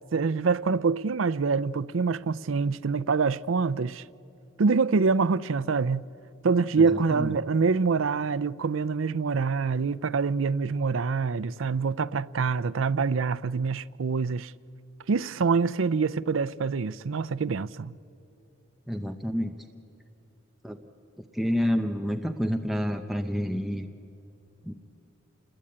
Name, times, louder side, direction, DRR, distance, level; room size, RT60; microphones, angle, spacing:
voice 1, 0.1-4.0 4.6-6.1 6.4-14.5 15.1-18.0, right 4 dB, 80° right, 0.5 m, -25 dB
voice 2, 6.8-7.4 18.9-19.6 20.6-20.8 21.3-23.9 24.6-24.7, equal, ahead, 0.8 m, -29 dB
28.5 x 21.5 x 8.8 m
head